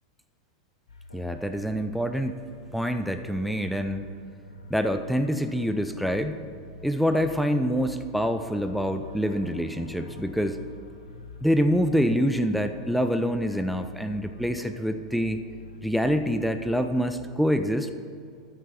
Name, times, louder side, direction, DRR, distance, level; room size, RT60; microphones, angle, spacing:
sound 1, 0.9-17.4, left 1 dB, 80° left, 0.8 m, -46 dB
voice 1, 1.1-2.4 2.7-4.1 4.7-6.5 6.8-10.6 11.4-15.4 15.8-17.9, equal, ahead, 8 dB, 0.4 m, -26 dB
9.5 x 4.7 x 6.7 m, 2.4 s
figure-of-eight pair, 90°, 3 cm